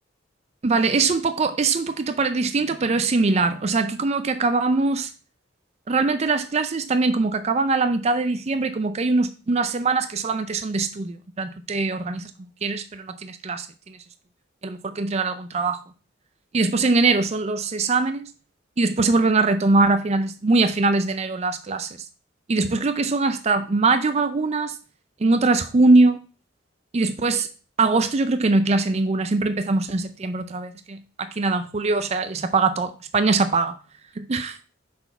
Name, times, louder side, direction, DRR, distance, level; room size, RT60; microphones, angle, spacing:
voice 1, 0.6-5.1 5.9-12.3 12.6-14.0 14.6-15.8 16.5-18.3 18.8-21.9 22.5-24.8 25.2-26.2 26.9-27.5 27.8-33.8 34.2-34.6, right 3 dB, 35° right, 0.4 m, -22 dB
5.9 x 4.3 x 5.4 m
head